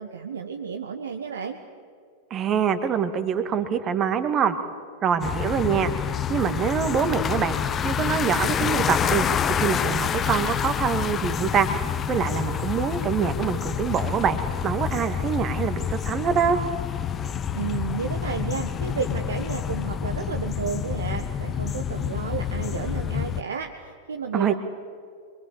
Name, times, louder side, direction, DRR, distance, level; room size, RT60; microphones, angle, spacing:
voice 1, 0.0-1.6 17.5-24.5, right 6 dB, 70° right, 4 dB, 1.5 m, -32 dB
voice 2, 2.3-4.6 5.0-5.9 6.3-7.6 7.8-9.3 9.6-11.7 12.1-16.6 24.3-24.5, right 7 dB, 30° right, 9 dB, 2.2 m, -25 dB
sound 1, 5.2-23.4, left 8 dB, 25° left, 1.0 m, -28 dB
26.0 x 24.0 x 8.4 m, 2.1 s
figure-of-eight pair, 90°, 0 cm